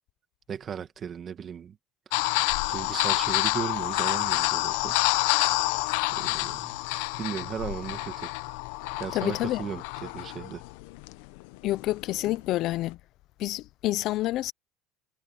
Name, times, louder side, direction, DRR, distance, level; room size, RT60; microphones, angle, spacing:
voice 1, 0.5-1.8 2.7-5.0 6.1-6.8 7.2-8.3 9.0-10.6, right 8 dB, 25° right, 2.0 m, -36 dB
sound 1, 2.1-12.9, left 21 dB, 75° left, 0.8 m, -28 dB
voice 2, 9.1-9.7 11.6-13.0 13.4-14.5, left 16 dB, 45° left, 0.5 m, -28 dB
cardioid pair, 160°, 0 cm